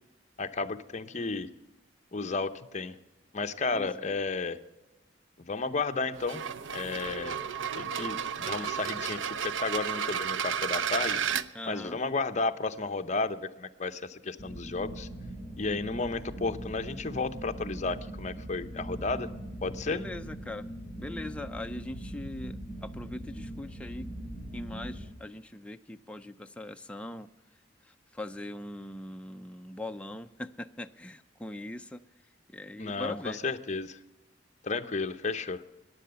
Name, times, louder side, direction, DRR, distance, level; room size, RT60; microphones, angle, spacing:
voice 1, 0.4-1.5 2.1-2.9 3.3-4.6 5.4-6.4 6.7-7.4 7.7-11.2 11.7-15.1 15.6-19.3 19.6-20.0 32.8-34.0 34.6-35.6, left 3 dB, 40° left, 10 dB, 0.7 m, -33 dB
voice 2, 3.7-4.1 11.5-12.0 19.8-20.7 20.9-24.1 24.5-27.3 27.8-32.0 32.5-33.4, left 1 dB, 5° left, 6 dB, 0.4 m, -41 dB
sound 1, 6.1-11.5, right 8 dB, 85° right, 0.6 m, -32 dB
sound 2, 14.4-25.1, right 1 dB, 35° right, 5.5 m, -41 dB
14.5 x 10.0 x 6.8 m, 1.1 s
head